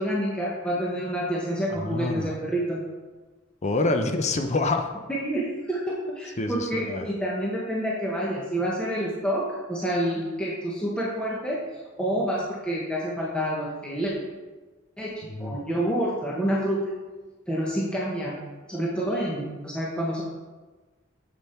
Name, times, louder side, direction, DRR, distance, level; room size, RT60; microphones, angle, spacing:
voice 1, 0.0-2.8 5.1-11.6 12.0-14.1 15.0-15.1 15.4-16.8 17.5-18.4 18.7-20.2, equal, 5° left, -5 dB, 1.0 m, -28 dB
voice 2, 1.7-2.4 3.6-4.9 6.4-7.1 15.2-15.6, left 2 dB, 35° left, 6 dB, 0.6 m, -27 dB
7.1 x 7.0 x 4.4 m, 1.2 s
head